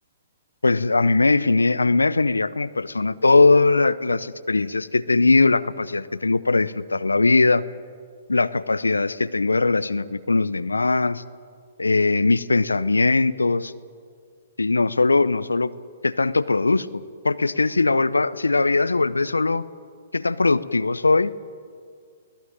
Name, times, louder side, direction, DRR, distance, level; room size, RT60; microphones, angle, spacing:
voice 1, 0.6-7.6 8.3-11.2 11.8-13.7 14.6-15.7 16.0-19.7 20.1-21.3, left 3 dB, 90° left, 17 dB, 0.7 m, -20 dB
23.0 x 17.0 x 8.9 m, 2.1 s
figure-of-eight pair, 125°, 0 cm